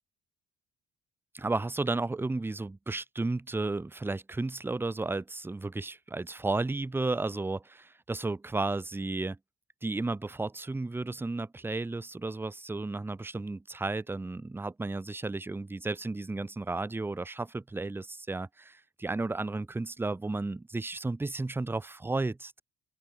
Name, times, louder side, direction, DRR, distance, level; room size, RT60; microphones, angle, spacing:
voice 1, 1.3-9.4 9.8-22.6, right 3 dB, 10° right, 0.4 m, -33 dB
cardioid pair, 90°, 30 cm